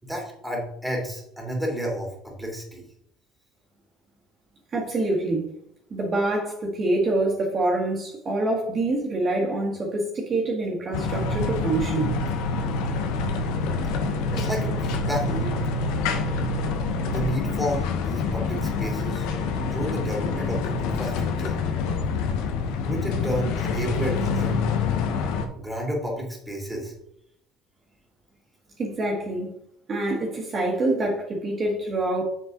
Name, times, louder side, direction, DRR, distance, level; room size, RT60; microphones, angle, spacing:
voice 1, 0.0-2.8 14.3-15.6 17.1-19.3 19.6-21.6 22.8-24.7 25.5-26.9, equal, ahead, -1 dB, 2.9 m, -31 dB
voice 2, 4.7-5.5 5.9-12.1 28.8-29.5 29.9-32.2, right 2 dB, 30° right, -2 dB, 1.8 m, -26 dB
sound 1, 10.9-25.4, left 4 dB, 80° left, 1.1 m, -26 dB
7.3 x 6.2 x 4.0 m, 0.73 s
cardioid pair, 135°, 0 cm